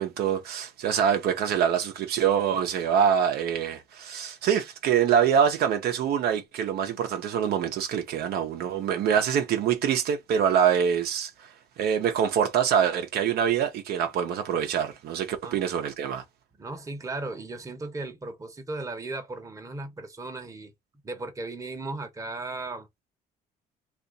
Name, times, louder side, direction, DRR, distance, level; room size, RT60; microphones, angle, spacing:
voice 1, 0.0-11.5 11.8-16.2, right 8 dB, 70° right, 0.7 m, -25 dB
voice 2, 16.6-20.7 21.0-22.9, right 2 dB, 20° right, 0.8 m, -36 dB
2.8 x 2.5 x 3.8 m
cardioid pair, 110°, 17 cm